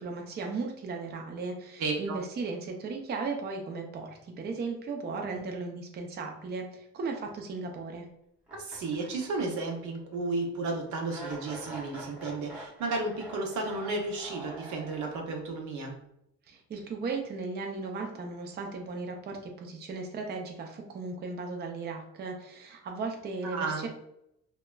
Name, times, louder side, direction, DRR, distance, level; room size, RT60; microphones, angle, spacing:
voice 1, 0.0-8.1 16.5-23.9, right 4 dB, 35° right, 2 dB, 0.4 m, -36 dB
voice 2, 1.8-2.2 8.5-16.0 23.4-23.9, right 3 dB, 70° right, 2 dB, 0.7 m, -33 dB
sound 1, 8.5-9.8 10.1-10.2 11.1-15.4, right 1 dB, 5° right, 0.8 m, -45 dB
2.8 x 2.2 x 2.2 m, 0.78 s
cardioid pair, 90°, 30 cm